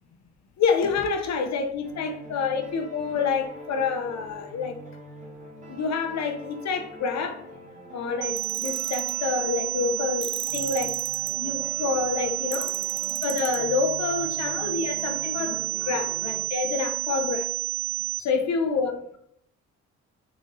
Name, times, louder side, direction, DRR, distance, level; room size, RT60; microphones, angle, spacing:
voice 1, 0.6-4.8 5.7-7.4 7.9-11.0 11.4-12.8 13.2-15.6 15.8-17.5 18.2-19.2, left 5 dB, 60° left, 4 dB, 0.9 m, -28 dB
sound 1, 1.8-16.4, equal, 25° right, 1.3 m, -45 dB
sound 2, 8.2-18.2, right 17 dB, 85° right, 0.5 m, -30 dB
Tools, 8.4-9.1 10.2-11.3 12.5-13.6, equal, ahead, 0.4 m, -39 dB
3.8 x 3.5 x 3.8 m, 0.70 s
cardioid pair, 90°, 30 cm